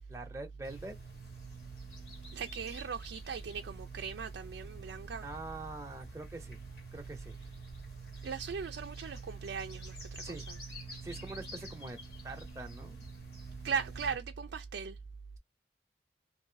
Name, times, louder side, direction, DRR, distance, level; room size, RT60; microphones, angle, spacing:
voice 1, 0.1-0.9 5.2-6.6 6.9-7.4 10.2-10.5 11.0-12.0 12.2-13.1, right 2 dB, 15° right, 0.8 m, -44 dB
sound 1, 0.6-14.2, right 3 dB, 70° left, 1.6 m, -48 dB
voice 2, 2.3-5.2 8.2-10.4 13.6-15.0, right 6 dB, 80° right, 0.4 m, -38 dB
2.7 x 2.5 x 3.8 m
head